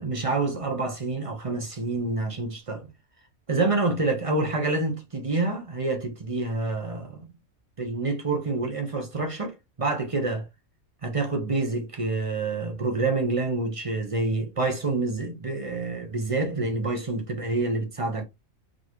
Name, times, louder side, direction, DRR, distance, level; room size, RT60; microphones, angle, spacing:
voice 1, 0.0-2.9 3.5-7.3 7.8-10.4 11.0-18.2, right 3 dB, 25° right, 1.0 m, -27 dB
4.3 x 3.2 x 3.0 m
omnidirectional pair, 1.5 m